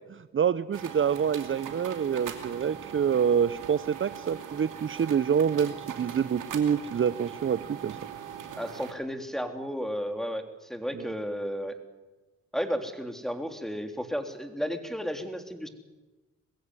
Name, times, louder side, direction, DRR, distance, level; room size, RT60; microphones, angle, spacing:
voice 1, 0.3-8.0 10.9-11.1, right 7 dB, 40° right, 15 dB, 0.7 m, -27 dB
sound 1, 0.7-8.9, right 8 dB, 80° right, 2.6 m, -41 dB
voice 2, 8.5-10.4 10.7-11.7 12.5-15.7, equal, ahead, 5 dB, 3.5 m, -33 dB
22.0 x 15.5 x 9.7 m, 1.2 s
supercardioid pair, 40°, 31 cm